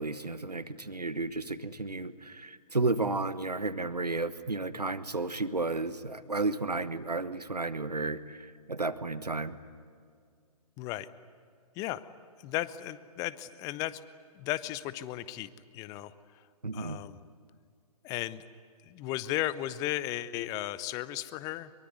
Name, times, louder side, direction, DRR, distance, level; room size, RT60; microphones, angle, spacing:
voice 1, 0.0-9.6 16.6-17.0, right 3 dB, 85° right, 14 dB, 1.3 m, -32 dB
voice 2, 12.4-14.0 14.4-16.4 16.7-17.2 18.0-18.5 18.8-21.7, left 15 dB, 20° left, 17 dB, 0.7 m, -35 dB
23.5 x 23.0 x 9.6 m, 2.2 s
figure-of-eight pair, 125°, 20 cm